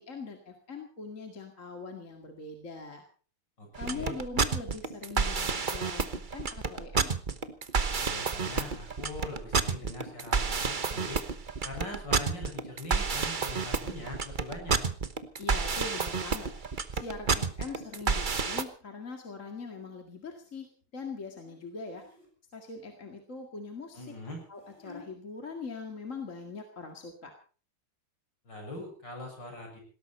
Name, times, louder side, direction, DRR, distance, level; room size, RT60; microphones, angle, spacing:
voice 1, 0.0-3.0 3.8-7.2 15.4-22.2 22.5-24.1 24.5-27.3, left 4 dB, 35° left, 4 dB, 2.3 m, -42 dB
voice 2, 3.6-4.1 8.1-11.2 11.6-14.8 23.9-24.4 28.4-29.8, left 1 dB, 55° left, 2 dB, 7.6 m, -42 dB
sound 1, 3.7-18.6, right 5 dB, 35° right, 0.8 m, -29 dB
sound 2, 11.2-11.4 14.4-14.8 15.1-16.3 16.9-17.8 18.9-19.7 20.1-20.4 21.4-21.6 21.8-22.4 23.8-25.1 25.9-26.2 26.4-26.5 27.0-27.1, left 3 dB, 15° left, 6.4 m, -56 dB
19.5 x 17.0 x 4.3 m, 0.40 s
omnidirectional pair, 2.3 m